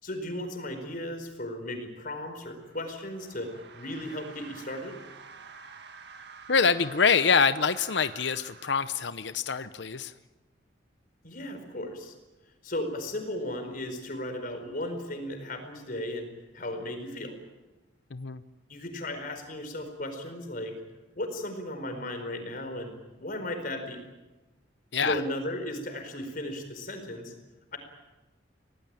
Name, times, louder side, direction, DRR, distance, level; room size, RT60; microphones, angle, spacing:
voice 1, 0.0-5.0 11.2-12.1 12.6-17.4 18.7-20.7 21.1-24.0 25.0-27.3 27.7-27.8, left 1 dB, 45° left, 6 dB, 4.6 m, -36 dB
sound 1, 2.4-9.5, right 5 dB, 60° right, 1.8 m, -49 dB
voice 2, 6.5-10.1 18.1-18.4 24.9-25.2, left 5 dB, 65° left, 12 dB, 0.8 m, -25 dB
26.0 x 18.0 x 9.0 m, 1.1 s
head